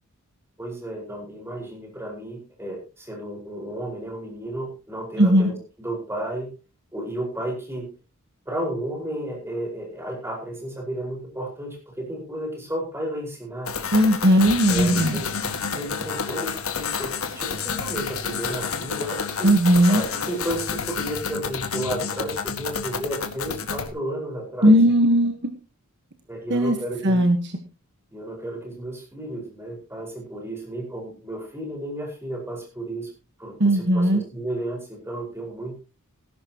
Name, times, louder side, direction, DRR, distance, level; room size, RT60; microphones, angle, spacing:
voice 1, 0.6-6.5 6.9-7.9 8.5-13.7 14.7-15.3 15.8-17.1 17.4-19.5 19.9-24.7 26.3-27.3 28.1-33.1 33.4-35.8, right 1 dB, 10° right, 0 dB, 5.1 m, -33 dB
voice 2, 5.2-5.5 13.9-15.2 19.4-20.0 24.6-25.4 26.5-26.7 27.0-27.4 33.6-34.2, equal, 55° right, 6 dB, 1.3 m, -17 dB
sound 1, 13.7-23.9, left 6 dB, 75° left, 1.8 m, -29 dB
18.5 x 11.0 x 3.0 m, 0.30 s
head